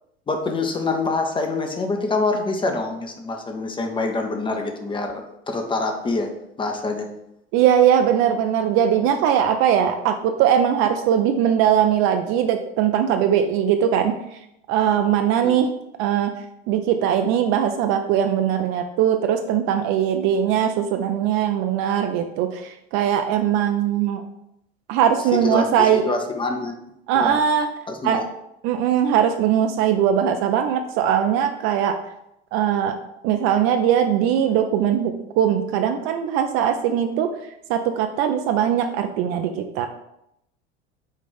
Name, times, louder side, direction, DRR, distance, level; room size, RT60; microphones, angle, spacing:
voice 1, 0.3-6.3 6.6-7.1 15.4-15.6 25.3-26.8 27.1-27.4 27.9-28.2, left 3 dB, 15° left, 4 dB, 0.5 m, -25 dB
voice 2, 7.5-14.2 14.7-15.7 16.0-16.3 16.7-24.2 24.9-26.1 27.1-27.7 28.0-28.2 28.6-32.0 32.5-33.0 33.2-37.3 37.7-39.9, right 9 dB, 40° right, 6 dB, 0.4 m, -20 dB
5.2 x 2.4 x 3.7 m, 0.81 s
figure-of-eight pair, 70°, 33 cm